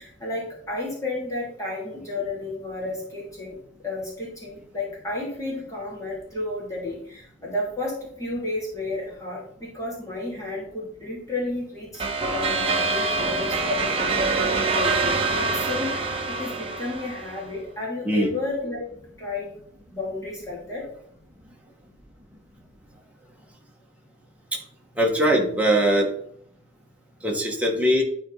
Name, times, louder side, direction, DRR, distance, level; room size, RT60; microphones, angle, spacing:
voice 1, 0.0-3.6 3.8-12.0 12.3-15.0 15.3-18.9 19.2-19.5 19.9-20.8, left 2 dB, 20° left, -5 dB, 2.9 m, -32 dB
sound 1, 12.0-17.5, right 3 dB, 30° right, 1.2 m, -25 dB
voice 2, 25.0-26.1 27.2-28.0, equal, 10° right, -1 dB, 1.7 m, -21 dB
11.5 x 4.4 x 4.1 m, 0.66 s
head